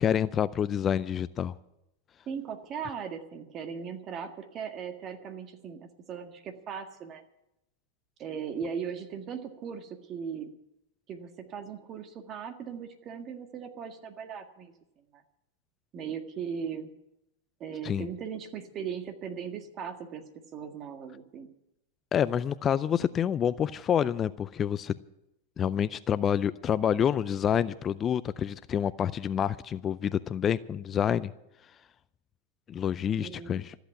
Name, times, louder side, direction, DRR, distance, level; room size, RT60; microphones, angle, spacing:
voice 1, 0.0-1.6 17.8-18.1 22.1-24.9 25.6-31.3 32.7-33.7, left 9 dB, 30° left, 15 dB, 0.4 m, -28 dB
voice 2, 2.3-7.2 8.2-10.5 11.1-14.7 15.1-15.2 15.9-16.9 17.6-21.5 33.2-33.6, right 7 dB, 35° right, 7 dB, 1.7 m, -38 dB
14.0 x 8.1 x 10.0 m, 0.86 s
hypercardioid pair, 115°, 0 cm